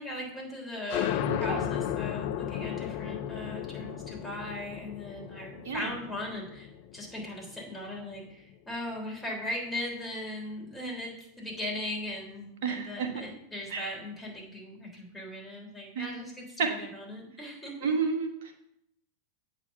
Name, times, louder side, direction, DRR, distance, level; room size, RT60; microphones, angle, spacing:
voice 1, 0.0-17.9, left 1 dB, 10° left, -2 dB, 3.4 m, -39 dB
sound 1, 0.9-8.2, left 11 dB, 55° left, 0.5 m, -34 dB
voice 2, 1.3-1.6 5.6-6.0 12.6-13.1 13.7-13.8 15.9-16.1 16.6-16.7 17.8-18.5, right 5 dB, 65° right, 4 dB, 1.5 m, -30 dB
8.2 x 4.1 x 6.7 m, 0.79 s
hypercardioid pair, 95°, 0 cm